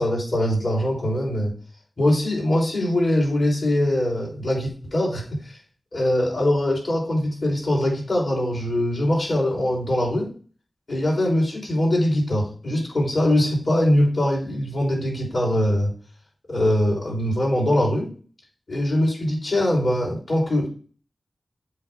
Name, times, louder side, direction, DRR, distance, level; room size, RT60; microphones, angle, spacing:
voice 1, 0.0-1.5 2.0-5.6 5.9-10.3 10.9-15.9 16.5-18.1 18.7-20.7, left 1 dB, 70° left, -3 dB, 3.7 m, -22 dB
7.6 x 2.8 x 5.8 m, 0.40 s
wide cardioid pair, 55°, 0 cm